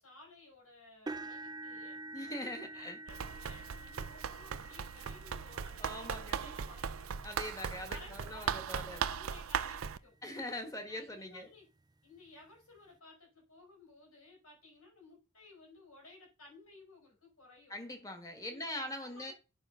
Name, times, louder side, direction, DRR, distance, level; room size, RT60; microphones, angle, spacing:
voice 1, 0.0-7.1 7.9-10.2 10.7-11.7 12.0-17.7 18.5-19.3, left 2 dB, 85° left, 5.5 m, -56 dB
sound 1, 1.1-9.1 9.7-10.0 10.4-10.5 11.9-12.0, right 2 dB, 20° right, 0.3 m, -49 dB
voice 2, 2.1-3.0 5.8-6.5 7.2-9.0 10.2-11.5 17.7-19.3, left 1 dB, 15° left, 1.4 m, -42 dB
Run, 3.1-10.0, right 7 dB, 75° right, 0.5 m, -38 dB
9.0 x 5.2 x 5.6 m
head